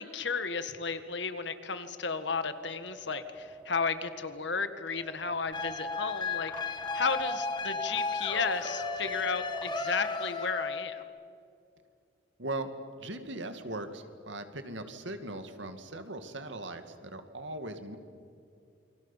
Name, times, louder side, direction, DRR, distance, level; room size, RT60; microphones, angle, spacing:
voice 1, 0.0-11.0, left 4 dB, 60° left, 10 dB, 1.7 m, -33 dB
Wind, 2.3-10.3, equal, 5° right, 0.7 m, -43 dB
sound 1, 5.5-11.0, left 4 dB, 20° left, 1.7 m, -35 dB
voice 2, 12.4-12.7 13.0-18.0, right 2 dB, 65° right, 8 dB, 2.3 m, -39 dB
28.5 x 24.5 x 7.3 m, 2.5 s
head